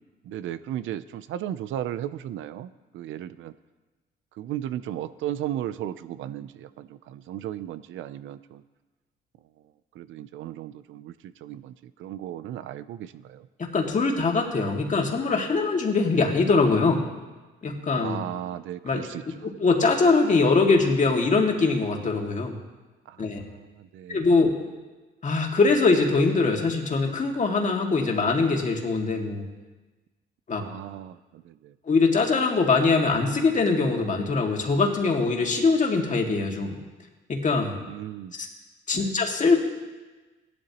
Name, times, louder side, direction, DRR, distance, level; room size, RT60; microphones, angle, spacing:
voice 1, 0.2-3.5 4.4-8.6 9.9-13.5 17.9-19.2 23.1-24.3 30.6-31.7 37.9-38.4 38.9-39.1, right 11 dB, 80° right, 14 dB, 0.5 m, -35 dB
voice 2, 13.6-17.1 17.6-18.2 18.8-19.0 19.4-22.5 23.2-23.4 24.1-24.5 25.2-29.4 30.5-30.6 31.9-36.8 37.3-37.8 38.4-38.5 38.9-39.6, left 3 dB, 40° left, 1 dB, 2.1 m, -22 dB
17.0 x 12.0 x 3.0 m, 1.2 s
cardioid pair, 90°, 20 cm